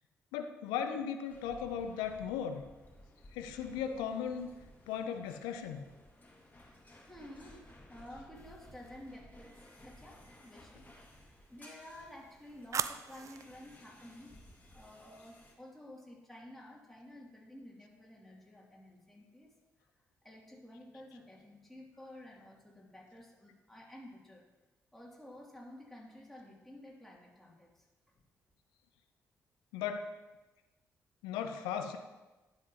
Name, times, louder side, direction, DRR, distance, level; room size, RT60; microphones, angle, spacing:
voice 1, 0.3-2.6 3.3-4.5 4.9-5.9 29.7-30.1 31.2-32.0, left 8 dB, 75° left, 7 dB, 0.5 m, -37 dB
sound 1, 1.3-15.5, left 1 dB, 25° left, 2.0 m, -58 dB
voice 2, 7.0-14.3 14.7-19.5 20.2-24.4 24.9-27.9 28.1-28.2, left 1 dB, 5° left, -3 dB, 2.6 m, -52 dB
sound 2, 8.4-9.1 11.5-13.6, right 7 dB, 45° right, 0.4 m, -41 dB
10.5 x 7.2 x 2.9 m, 1.1 s
hypercardioid pair, 40°, 8 cm